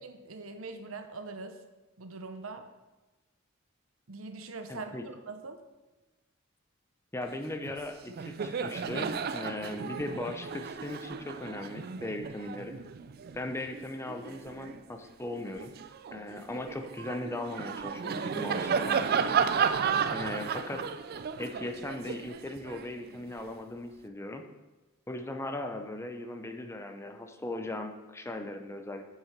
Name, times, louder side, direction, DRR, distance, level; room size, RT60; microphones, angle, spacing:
voice 1, 0.0-1.6 2.0-2.6 4.1-5.6, right 3 dB, 85° right, 7 dB, 0.9 m, -42 dB
voice 2, 4.7-5.0 7.1-12.7 13.3-15.7 16.1-19.4 20.1-20.8 21.4-24.4 25.1-29.0, left 1 dB, 15° left, 5 dB, 0.6 m, -38 dB
Laughter, 7.6-7.8 8.1-14.8 15.3-23.5, right 6 dB, 50° right, 0.4 m, -33 dB
8.7 x 5.8 x 4.5 m, 1.1 s
head